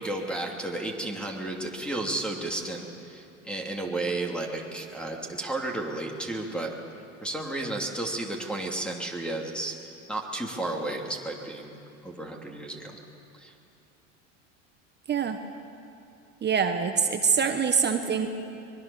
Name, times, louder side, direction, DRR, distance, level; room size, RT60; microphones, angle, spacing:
voice 1, 0.0-6.7 7.2-9.7 10.1-13.0 13.3-13.5, right 2 dB, 5° left, 1 dB, 2.8 m, -33 dB
voice 2, 16.4-18.3, right 6 dB, 30° right, 6 dB, 1.2 m, -24 dB
24.0 x 22.0 x 7.1 m, 2.7 s
supercardioid pair, 110°, 37 cm